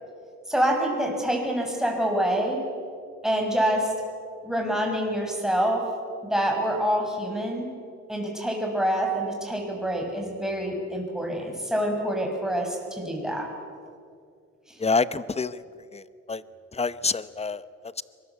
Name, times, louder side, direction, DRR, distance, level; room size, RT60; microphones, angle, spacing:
voice 1, 0.5-2.6 3.2-3.9 4.4-5.9 6.2-7.7 8.1-13.5 14.7-14.8, right 1 dB, ahead, 1 dB, 6.5 m, -26 dB
voice 2, 14.8-15.6 15.9-16.0 16.3-16.4 16.8-17.6, left 4 dB, 20° left, 16 dB, 0.9 m, -26 dB
24.0 x 21.0 x 8.4 m, 2.3 s
cardioid pair, 90°, 30 cm